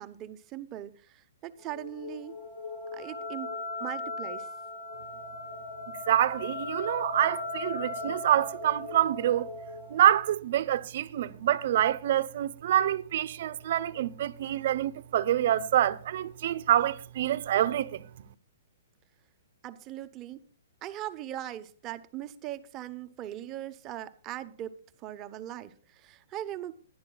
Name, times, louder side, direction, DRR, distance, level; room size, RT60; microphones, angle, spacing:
voice 1, 0.0-2.4 2.9-4.5 19.6-20.4 20.8-24.8 25.0-26.7, right 12 dB, 25° right, 0.9 m, -40 dB
sound 1, 1.6-10.2, left 3 dB, 55° left, 2.6 m, -38 dB
voice 2, 6.1-9.5 9.9-18.0, right 11 dB, 55° right, 0.9 m, -26 dB
20.5 x 11.0 x 2.3 m
hypercardioid pair, 150°, 0 cm